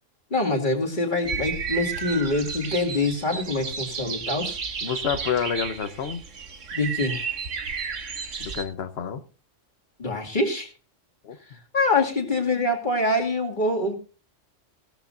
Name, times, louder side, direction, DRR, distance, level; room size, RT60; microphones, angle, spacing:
voice 1, 0.3-4.6 6.7-7.2 10.0-10.7 11.7-14.0, left 2 dB, 40° left, 1 dB, 2.5 m, -25 dB
sound 1, 1.2-8.6, right 5 dB, 85° right, 1.7 m, -32 dB
voice 2, 4.8-6.2 8.4-9.2 11.2-11.4, left 7 dB, 60° left, 10 dB, 1.2 m, -28 dB
17.0 x 13.0 x 2.6 m, 0.33 s
omnidirectional pair, 1.3 m